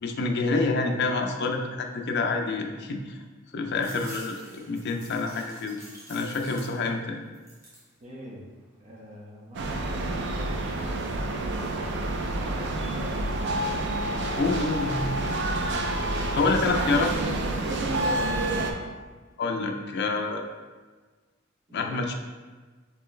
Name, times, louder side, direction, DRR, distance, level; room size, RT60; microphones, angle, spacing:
voice 1, 0.0-3.2 3.5-5.8 6.1-7.2 14.3-15.1 16.1-17.1 19.4-20.5 21.7-22.1, left 3 dB, 55° left, 3 dB, 0.4 m, -27 dB
sound 1, 3.7-7.0 7.3-7.9 8.4-9.1, right 1 dB, 15° right, 1.2 m, -48 dB
voice 2, 8.0-8.4 8.8-11.8 12.4-13.8 15.6-16.5 17.6-18.9 21.7-22.0, equal, 35° right, -4 dB, 0.9 m, -42 dB
sound 2, 9.5-18.7, right 2 dB, 60° right, 0.4 m, -28 dB
4.4 x 3.1 x 3.2 m, 1.4 s
head